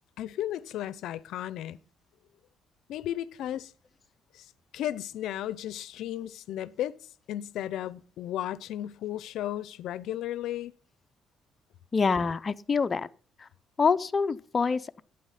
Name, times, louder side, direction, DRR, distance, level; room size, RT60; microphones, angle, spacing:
voice 1, 0.2-1.8 2.9-3.7 4.3-7.0 7.3-10.7, left 12 dB, 85° left, 0.5 m, -34 dB
voice 2, 11.9-13.1 13.8-15.0, left 5 dB, 30° left, 0.5 m, -26 dB
11.5 x 8.9 x 5.7 m
cardioid pair, 110°, 0 cm